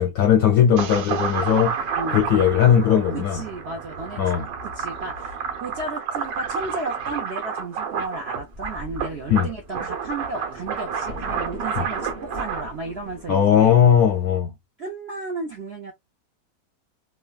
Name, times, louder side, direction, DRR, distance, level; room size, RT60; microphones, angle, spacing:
voice 1, 0.0-3.4 4.2-4.5 9.3-9.5 11.8-11.9 13.3-14.5, left 9 dB, 70° left, 0.9 m, -18 dB
sound 1, 0.8-12.6, right 6 dB, 85° right, 1.5 m, -30 dB
voice 2, 2.9-4.3 4.7-13.7 14.8-15.9, right 3 dB, 65° right, 0.6 m, -34 dB
Thunder, 8.1-8.2 8.5-14.3, equal, 30° right, 0.8 m, -40 dB
3.2 x 2.2 x 2.3 m
omnidirectional pair, 1.9 m